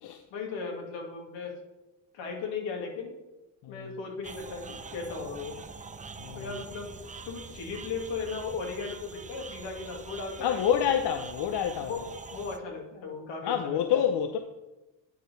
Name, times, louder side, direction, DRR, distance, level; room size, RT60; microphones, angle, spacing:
voice 1, 0.3-1.5 2.1-3.1 3.7-5.6 6.3-6.9 7.2-10.6 11.8-12.0 12.3-14.0, left 4 dB, 80° left, 2.1 m, -36 dB
voice 2, 3.6-3.9 6.2-6.5 10.4-11.9 13.4-14.4, left 9 dB, 65° left, 0.8 m, -28 dB
sound 1, 4.2-12.6, right 4 dB, 15° right, 0.6 m, -44 dB
9.4 x 4.3 x 5.2 m
supercardioid pair, 75°, 44 cm